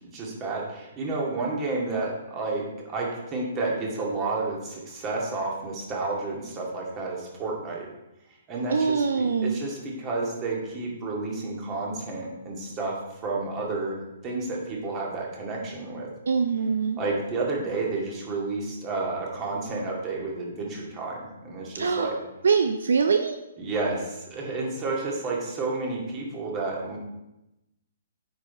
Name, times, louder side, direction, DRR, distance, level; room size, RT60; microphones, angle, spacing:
voice 1, 0.0-7.9 8.5-12.9 13.2-16.1 17.0-22.2 23.6-27.0, right 3 dB, 25° right, -2 dB, 2.3 m, -31 dB
voice 2, 8.7-9.6 16.3-17.0 21.7-22.1 22.4-23.4, right 5 dB, 65° right, 7 dB, 0.5 m, -23 dB
8.9 x 5.4 x 4.3 m, 0.93 s
figure-of-eight pair, 125°, 0 cm